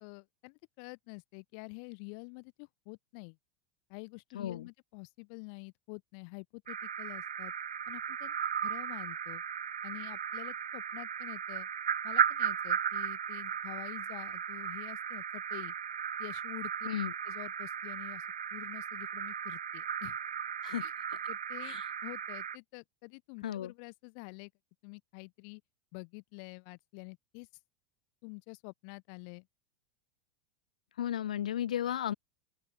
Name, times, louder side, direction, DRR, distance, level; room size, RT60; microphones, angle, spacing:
voice 1, 0.0-3.4 3.9-7.5 7.9-8.4 8.6-9.4 9.8-11.7 12.0-15.7 16.2-16.9 17.2-18.3 18.5-20.2 20.8-20.9 21.3-24.5 24.8-25.6 25.9-27.5 28.2-29.5, left 40 dB or more, 55° left, 1.1 m, -48 dB
voice 2, 4.3-4.7 16.9-17.1 20.6-20.8 21.6-21.9 23.4-23.7 31.0-32.1, left 10 dB, 75° left, 0.4 m, -34 dB
sound 1, 6.7-22.6, right 8 dB, 80° right, 0.4 m, -36 dB
open air
figure-of-eight pair, 85°, 4 cm